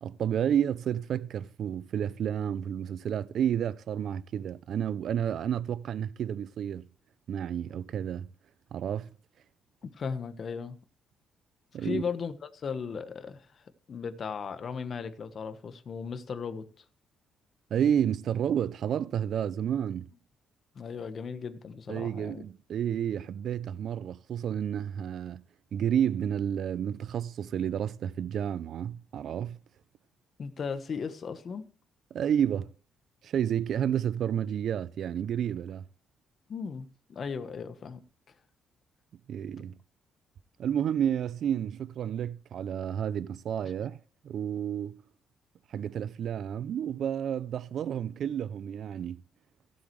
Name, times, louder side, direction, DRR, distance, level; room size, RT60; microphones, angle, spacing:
voice 1, 0.0-6.9 7.3-8.3 8.7-9.1 11.7-12.0 17.7-20.1 21.9-25.4 25.7-29.6 32.1-32.7 33.2-35.8 39.3-39.7 40.6-44.0 44.2-45.0 45.7-49.2, right 9 dB, 65° right, 0.4 m, -30 dB
voice 2, 9.8-10.8 11.8-16.7 20.7-22.4 30.4-31.7 36.5-38.0, left 6 dB, 45° left, 1.2 m, -36 dB
16.0 x 7.8 x 3.2 m
cardioid pair, 115°, 0 cm